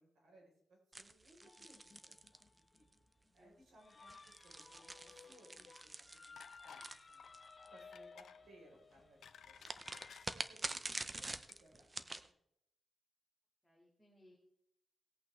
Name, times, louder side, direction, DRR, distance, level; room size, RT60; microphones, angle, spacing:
voice 1, 0.0-2.9 3.3-5.9 6.2-6.4 6.6-7.3 7.7-9.2 9.4-11.3 11.6-12.4, right 1 dB, 85° right, -1 dB, 3.9 m, -65 dB
sound 1, 0.9-2.9 3.9-7.7 9.6-12.3, right 2 dB, 20° right, 0.5 m, -46 dB
sound 2, 1.4-10.3, left 4 dB, 35° left, 0.8 m, -59 dB
voice 2, 3.2-3.6 3.8-3.9 10.7-10.8 13.6-14.4, left 1 dB, ahead, -2 dB, 2.0 m, -67 dB
sound 3, 6.4-6.9 7.2-7.4 7.9-8.4 8.9-10.3 11.0-11.2 11.5-11.6, left 8 dB, 85° left, 0.7 m, -57 dB
18.5 x 8.5 x 3.3 m, 0.79 s
wide cardioid pair, 145°, 0 cm